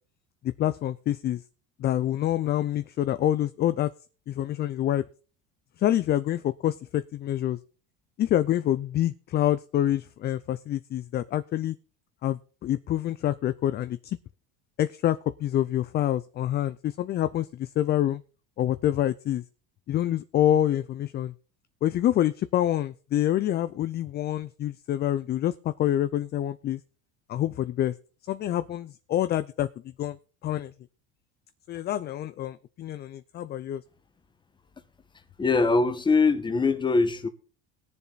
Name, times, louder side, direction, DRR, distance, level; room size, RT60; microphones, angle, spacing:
voice 1, 0.4-1.4 1.8-3.9 4.3-5.0 5.8-7.6 8.2-11.7 12.2-14.2 14.8-18.2 18.6-19.4 19.9-21.3 21.8-26.8 27.3-27.9 28.3-29.7 30.0-30.2 30.4-30.7 31.7-33.8, left 12 dB, 35° left, 0.5 m, -26 dB
voice 2, 35.4-37.3, left 4 dB, 15° left, 1.2 m, -22 dB
20.5 x 7.1 x 4.1 m
cardioid pair, 125°, 29 cm